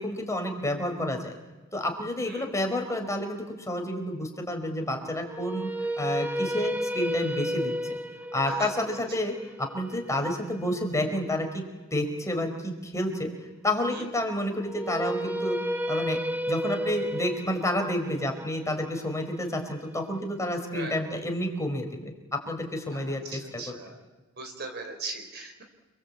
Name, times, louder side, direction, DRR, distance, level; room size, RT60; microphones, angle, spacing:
voice 1, 0.0-1.3 1.7-7.7 8.3-11.6 11.9-13.3 13.6-15.6 15.9-16.2 16.5-23.8, left 1 dB, 15° left, 3 dB, 4.6 m, -30 dB
sound 1, 5.3-11.4 14.6-20.7, equal, 10° right, 1.3 m, -33 dB
voice 2, 23.3-24.0 24.4-25.6, right 3 dB, 50° right, 5 dB, 4.8 m, -38 dB
30.0 x 22.0 x 8.5 m, 1.3 s
head